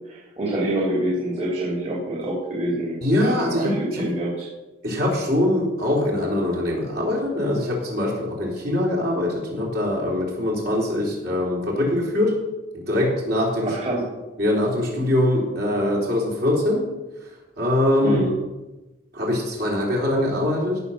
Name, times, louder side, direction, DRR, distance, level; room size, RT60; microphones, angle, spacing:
voice 1, 0.1-4.5 13.6-14.0 18.0-18.3, right 1 dB, 35° right, -5 dB, 3.0 m, -26 dB
voice 2, 3.0-4.1 4.8-12.4 12.7-13.8 14.4-16.9 17.6-18.3 19.1-20.8, left 1 dB, 50° right, -3 dB, 3.6 m, -23 dB
16.5 x 5.7 x 6.4 m, 1.1 s
head